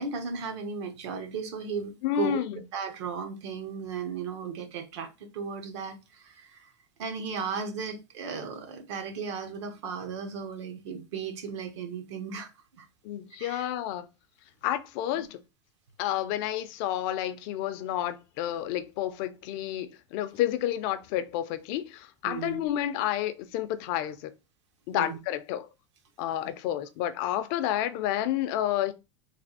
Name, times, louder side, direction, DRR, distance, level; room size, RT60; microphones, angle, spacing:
voice 1, 0.0-2.4 2.7-6.7 7.0-12.5 12.8-12.9 13.4-13.6 15.1-15.3 22.2-22.6 24.9-25.2, right 5 dB, 70° right, 1.0 m, -35 dB
voice 2, 2.0-2.6 13.0-14.1 14.6-15.4 16.0-24.3 24.9-25.7 26.2-28.9, left 12 dB, 50° left, 0.4 m, -30 dB
3.3 x 2.4 x 4.1 m
supercardioid pair, 150°, 15 cm